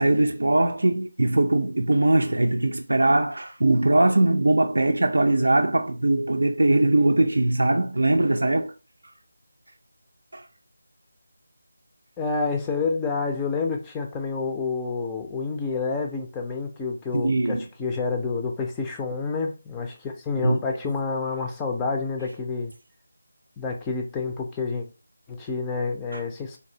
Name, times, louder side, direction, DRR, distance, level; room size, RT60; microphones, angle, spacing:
voice 1, 0.0-8.7 10.3-10.5 17.1-17.6 20.4-20.6 26.1-26.2, right 2 dB, 75° right, 0.4 m, -21 dB
voice 2, 12.2-22.7 23.6-24.9 25.3-26.6, left 4 dB, 10° left, 0.4 m, -28 dB
3.3 x 2.6 x 2.7 m
figure-of-eight pair, 170°, 0 cm